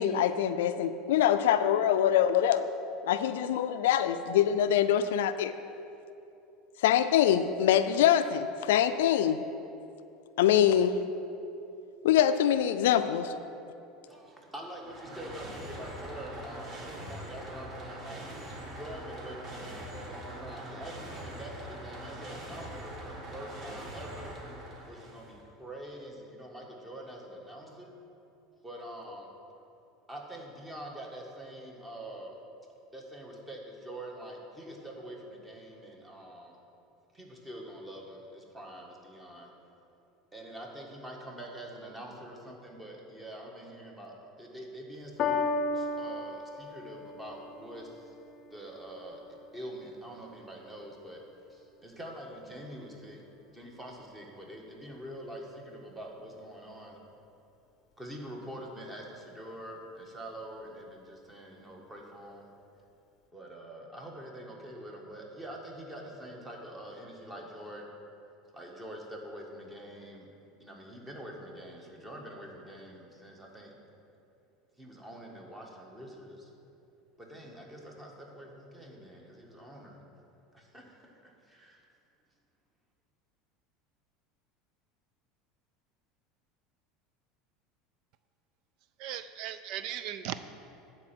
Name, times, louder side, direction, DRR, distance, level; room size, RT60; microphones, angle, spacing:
voice 1, 0.0-2.7 3.0-5.5 6.8-9.4 10.4-11.0 12.0-13.3, left 10 dB, 90° left, 11 dB, 0.4 m, -24 dB
voice 2, 14.1-18.3 18.7-24.3 24.8-27.9 28.6-29.3 30.1-32.3 32.9-36.6 37.1-39.5 40.3-48.1 48.5-49.2 49.5-53.2 53.5-57.0 58.0-62.5 63.3-67.9 68.5-70.3 70.6-73.7 74.8-76.5 77.2-80.0 80.5-81.0 81.2-81.8, right 1 dB, 10° right, -1 dB, 1.5 m, -45 dB
sound 1, 14.6-25.4, right 1 dB, 35° right, 2.1 m, -43 dB
Piano, 45.2-51.8 52.6-52.7, left 3 dB, 45° left, 0.6 m, -37 dB
voice 3, 89.0-90.4, right 11 dB, 60° right, 12 dB, 0.3 m, -37 dB
9.8 x 4.4 x 7.5 m, 2.7 s
supercardioid pair, 125°, 0 cm